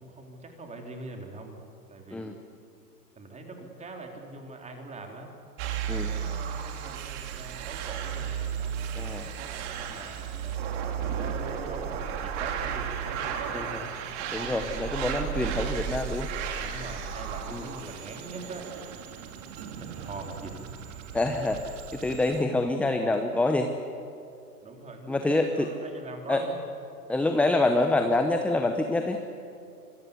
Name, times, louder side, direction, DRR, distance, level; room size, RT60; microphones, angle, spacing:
voice 1, 0.0-1.6 1.9-2.4 3.2-5.4 5.8-14.0 15.4-15.8 16.6-18.7 19.8-20.6 24.6-26.6, right 3 dB, 15° right, 3 dB, 3.6 m, -43 dB
sound 1, 5.6-22.4, right 8 dB, 45° right, 3.2 m, -34 dB
voice 2, 9.0-9.3 13.5-13.8 14.3-16.3 17.5-17.7 21.1-23.7 25.1-25.7 26.3-26.4 27.1-29.2, left 2 dB, 5° left, 6 dB, 0.7 m, -26 dB
25.5 x 21.5 x 8.3 m, 2.5 s
hypercardioid pair, 125°, 49 cm